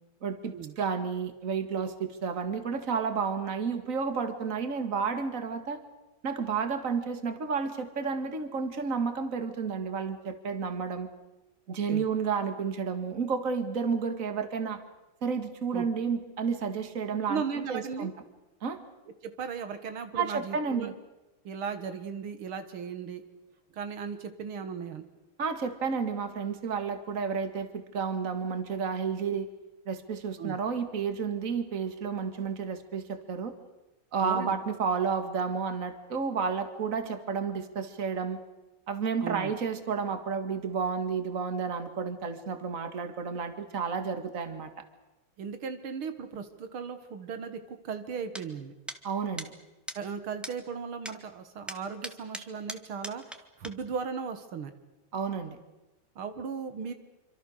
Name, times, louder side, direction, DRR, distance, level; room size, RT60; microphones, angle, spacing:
voice 1, 0.2-5.8 6.2-11.1 11.7-14.8 15.2-17.4 17.7-18.1 18.6-18.8 20.2-20.9 25.4-29.5 29.9-33.5 34.1-38.4 38.9-44.7 49.0-49.5 55.1-55.6, right 5 dB, 40° right, 8 dB, 2.2 m, -31 dB
voice 2, 17.3-18.1 19.2-20.9 21.4-23.2 23.7-25.0 30.4-30.6 34.2-34.5 39.2-39.5 45.4-48.7 49.9-54.7 56.2-56.9, right 6 dB, 85° right, 9 dB, 2.5 m, -36 dB
sound 1, 48.3-48.4 48.9-49.0 49.4-49.5 49.9-50.0 50.4-50.5 51.0-51.2 51.7-53.4 53.6-53.7, equal, ahead, 1.3 m, -39 dB
26.5 x 25.5 x 6.5 m, 1.0 s
omnidirectional pair, 2.3 m